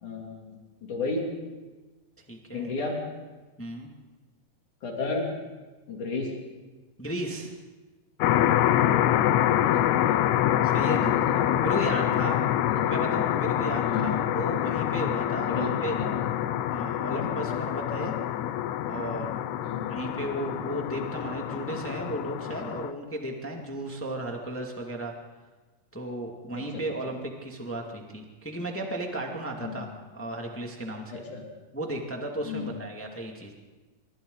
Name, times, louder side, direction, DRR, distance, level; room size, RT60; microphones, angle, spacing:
voice 1, 0.0-1.2 2.5-3.0 4.8-5.3 5.9-6.3 9.5-10.2 11.1-13.1 13.8-14.2 15.4-16.4 17.2-17.4 19.6-19.9 26.5-26.8 29.6-29.8 31.1-31.5 32.4-32.7, left 4 dB, 60° left, -1 dB, 4.4 m, -34 dB
voice 2, 2.3-2.7 3.6-3.9 7.0-7.5 10.6-11.1 11.6-12.4 12.9-16.0 16.7-18.1 18.9-19.4 19.9-25.1 25.9-29.9 30.1-31.0 31.7-33.5, right 1 dB, 5° left, 1 dB, 1.4 m, -34 dB
sound 1, 8.2-22.9, left 12 dB, 80° left, 1.7 m, -26 dB
27.0 x 24.5 x 4.0 m, 1.2 s
omnidirectional pair, 4.1 m